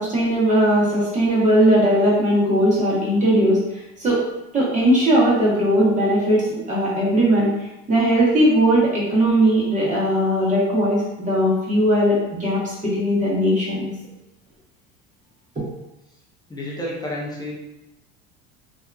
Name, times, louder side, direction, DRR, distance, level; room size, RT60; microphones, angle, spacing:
voice 1, 0.0-3.6 4.0-4.2 4.5-7.5 7.9-13.9, right 1 dB, 25° right, -6 dB, 1.1 m, -18 dB
voice 2, 16.5-17.5, left 1 dB, 15° left, -4 dB, 0.7 m, -30 dB
2.7 x 2.5 x 2.3 m, 0.89 s
supercardioid pair, 120°, 31 cm